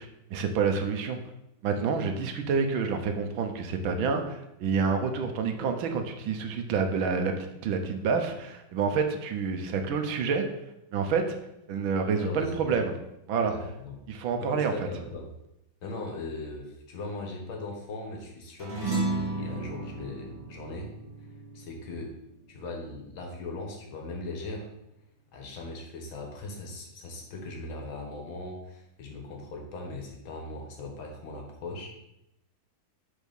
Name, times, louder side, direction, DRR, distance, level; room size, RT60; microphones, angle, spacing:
voice 1, 0.3-1.2 1.6-10.5 10.9-11.2 11.7-12.9 13.3-13.5 14.1-14.9, right 5 dB, 80° right, 6 dB, 1.6 m, -28 dB
voice 2, 12.2-12.8 13.4-14.0 14.4-15.3 15.8-20.9 21.5-22.2 22.5-24.7 25.3-31.9, left 2 dB, 80° left, 1 dB, 2.2 m, -39 dB
sound 1, 18.6-23.3, right 3 dB, 25° right, 2.1 m, -34 dB
6.4 x 4.7 x 5.3 m, 0.86 s
omnidirectional pair, 2.2 m